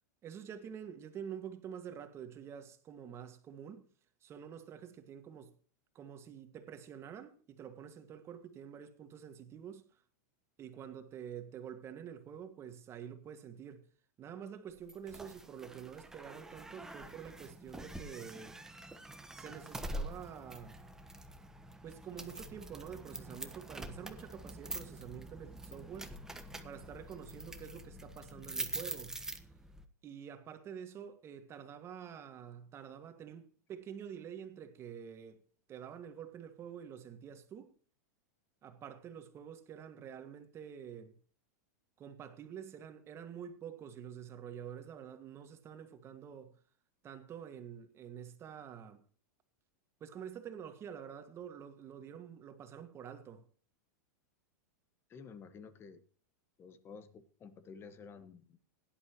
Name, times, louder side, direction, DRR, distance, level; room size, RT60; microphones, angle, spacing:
voice 1, 0.2-3.9 4.2-5.5 6.0-9.9 10.6-13.8 14.2-18.6 19.3-20.8 21.8-26.2 26.6-29.2 30.0-35.4 35.7-37.7 38.6-41.2 42.0-46.5 47.0-49.0 50.0-53.5, right 8 dB, 30° right, 1.9 m, -48 dB
sound 1, 14.9-29.8, right 1 dB, 5° right, 1.2 m, -45 dB
voice 2, 55.1-56.0 56.6-58.6, left 5 dB, 25° left, 1.5 m, -52 dB
17.0 x 11.0 x 3.0 m
supercardioid pair, 135°, 9 cm